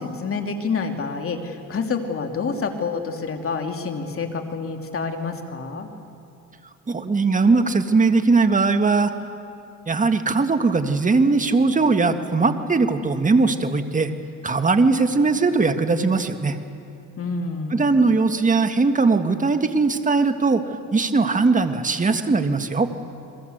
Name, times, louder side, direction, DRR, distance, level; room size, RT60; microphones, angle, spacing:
voice 1, 0.0-5.9 17.2-17.9, left 4 dB, 45° left, 4 dB, 2.9 m, -28 dB
voice 2, 6.9-9.1 9.9-14.1 14.4-16.6 17.7-20.6 20.9-22.9, right 3 dB, 25° right, 8 dB, 1.8 m, -19 dB
29.5 x 22.5 x 8.0 m, 2.6 s
cardioid pair, 90°, 30 cm